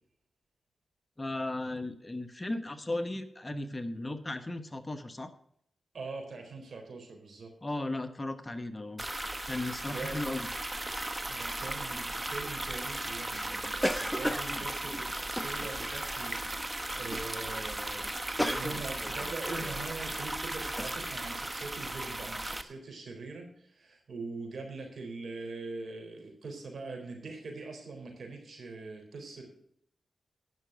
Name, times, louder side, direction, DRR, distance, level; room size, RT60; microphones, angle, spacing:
voice 1, 1.2-5.3 7.6-9.1 9.5-10.5, left 2 dB, 25° left, 10 dB, 1.0 m, -36 dB
voice 2, 5.9-7.5 9.8-10.4 11.3-29.5, right 3 dB, 65° right, 2 dB, 4.1 m, -42 dB
sound 1, 9.0-22.6, right 1 dB, 20° right, 1.1 m, -36 dB
sound 2, 13.3-16.0 16.5-16.7 17.1-17.4 17.6-17.7 18.0-19.8 20.3-20.4 20.8-21.0, equal, ahead, 0.8 m, -35 dB
11.0 x 6.0 x 7.9 m, 0.69 s
cardioid pair, 55°, 0 cm